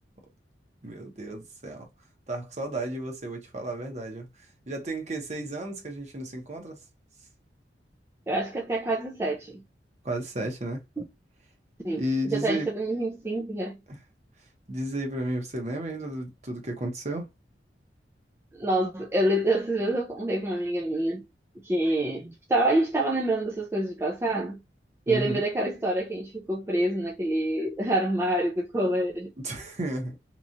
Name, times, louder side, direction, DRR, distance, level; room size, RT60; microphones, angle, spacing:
voice 1, 0.8-1.9 2.3-4.3 4.7-6.8 10.0-10.8 11.9-12.7 13.9-14.0 14.7-17.3 25.1-25.4 29.4-30.2, right 1 dB, 40° right, 0.9 m, -33 dB
voice 2, 8.3-9.6 11.0-11.1 11.8-13.8 18.5-21.2 21.6-24.6 25.1-29.3, right 1 dB, 15° right, 0.4 m, -27 dB
3.0 x 2.3 x 2.5 m
head